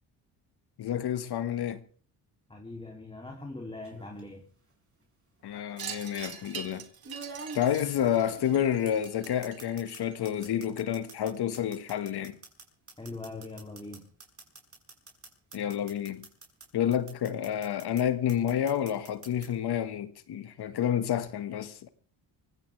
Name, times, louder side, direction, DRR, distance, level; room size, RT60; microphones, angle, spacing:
voice 1, 0.8-1.8 5.4-6.9 7.5-12.4 15.5-16.3 16.7-21.9, left 10 dB, 65° left, 1.7 m, -29 dB
voice 2, 2.5-4.5 13.0-14.0, left 2 dB, 10° left, 2.9 m, -41 dB
sound 1, 3.8-4.2 5.4-5.5 7.0-10.0 10.2-16.6 16.9-18.0 18.3-19.5, right 3 dB, 30° right, 6.7 m, -46 dB
Wind chime, 5.8-10.4, right 8 dB, 55° right, 2.3 m, -44 dB
25.0 x 16.5 x 3.4 m
supercardioid pair, 70°, 42 cm